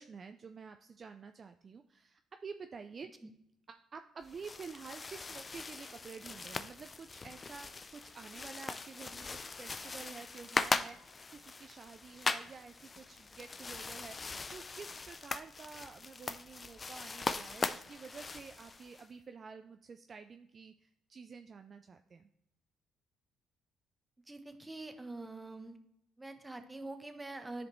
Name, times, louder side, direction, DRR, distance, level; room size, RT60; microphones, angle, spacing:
voice 1, 0.0-3.1 3.7-22.3, right 5 dB, 45° right, 7 dB, 0.4 m, -50 dB
sound 1, 4.2-19.1, left 4 dB, 35° left, 0.5 m, -40 dB
voice 2, 24.3-25.8 26.2-27.7, right 2 dB, 15° right, 7 dB, 1.0 m, -45 dB
10.5 x 5.0 x 3.1 m, 0.77 s
supercardioid pair, 65°, 0 cm